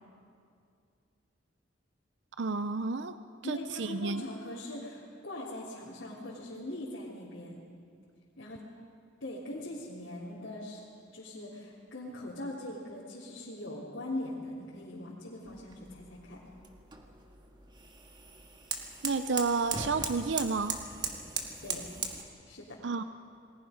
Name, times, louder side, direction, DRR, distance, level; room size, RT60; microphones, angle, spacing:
voice 1, 2.4-3.2 3.4-4.2 19.0-20.8 22.8-23.0, right 4 dB, 65° right, 11 dB, 0.6 m, -31 dB
voice 2, 3.4-7.7 8.4-8.6 9.2-10.8 11.1-16.4 21.6-21.9 22.5-22.8, left 1 dB, 80° left, -7 dB, 3.6 m, -41 dB
sound 1, 15.4-22.2, right 4 dB, 25° right, 1.7 m, -39 dB
29.0 x 20.5 x 5.2 m, 2.4 s
head